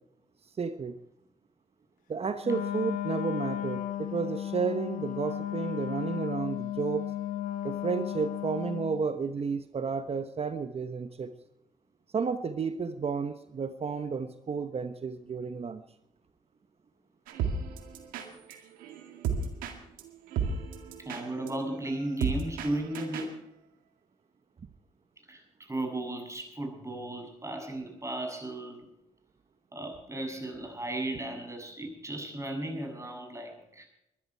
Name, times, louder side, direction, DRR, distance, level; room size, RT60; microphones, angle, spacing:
voice 1, 0.6-1.0 2.1-7.1 7.6-11.3 12.1-15.8, right 5 dB, 45° right, 11 dB, 1.1 m, -32 dB
Wind instrument woodwind instrument, 2.4-9.1, left 12 dB, 80° left, 1.0 m, -34 dB
sound 1, 17.3-23.4, right 5 dB, 85° right, 2.1 m, -35 dB
voice 2, 21.0-23.4 25.3-28.9 29.7-33.9, right 1 dB, 20° right, 4 dB, 7.2 m, -35 dB
21.0 x 12.0 x 4.6 m, 0.85 s
supercardioid pair, 50°, 14 cm